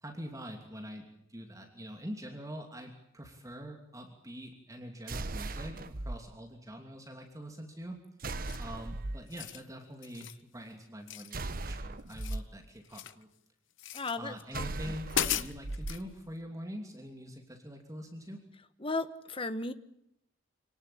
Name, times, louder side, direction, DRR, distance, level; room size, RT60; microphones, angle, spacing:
voice 1, 0.0-8.0 8.6-13.3 14.2-18.4, equal, 15° right, 3 dB, 2.9 m, -44 dB
sound 1, 5.1-6.2 8.2-9.2 11.3-12.4 14.5-16.0, right 2 dB, 45° right, 1.0 m, -38 dB
sound 2, 8.4-8.8 9.2-9.6 10.0-10.4 11.1-11.7 12.0-13.2 13.8-14.2 14.7-14.8 15.1-16.0, left 10 dB, 70° left, 1.0 m, -36 dB
voice 2, 13.9-14.9 18.8-19.7, left 3 dB, 25° left, 11 dB, 1.3 m, -36 dB
27.0 x 18.5 x 8.7 m, 0.79 s
head